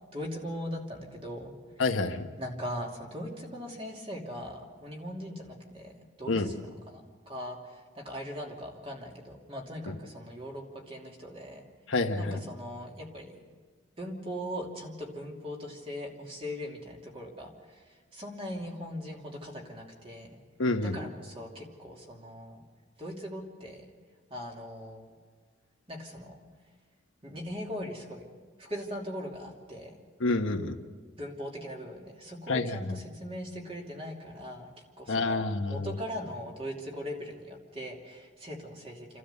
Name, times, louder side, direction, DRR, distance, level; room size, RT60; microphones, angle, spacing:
voice 1, 0.1-1.5 2.4-7.6 7.9-11.6 12.1-13.3 14.0-17.8 18.1-20.3 20.8-22.6 23.0-23.8 24.3-25.1 25.9-26.4 27.2-28.2 28.6-29.9 31.2-34.7 35.0-35.4 35.7-39.2, equal, 30° right, 0 dB, 2.8 m, -40 dB
voice 2, 1.8-2.3 6.3-6.5 9.9-10.0 11.9-12.4 20.6-21.0 30.2-30.8 32.5-33.0 35.1-35.9, left 3 dB, 85° left, 5 dB, 1.3 m, -28 dB
30.0 x 13.0 x 6.9 m, 1.5 s
head